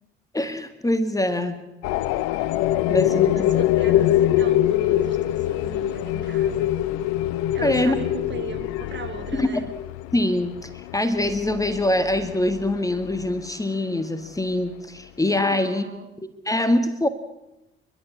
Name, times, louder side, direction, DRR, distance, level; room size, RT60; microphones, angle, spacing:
voice 1, 0.3-1.6 2.9-3.6 7.6-8.0 9.3-9.7 10.1-15.8 16.5-17.1, left 1 dB, 10° left, 11 dB, 1.9 m, -24 dB
sound 1, 1.8-13.5, left 13 dB, 60° left, 0.7 m, -24 dB
voice 2, 2.9-6.8 7.5-9.7 15.4-16.1, right 6 dB, 40° right, 7 dB, 2.7 m, -38 dB
29.0 x 12.0 x 8.5 m, 0.92 s
figure-of-eight pair, 50°, 29 cm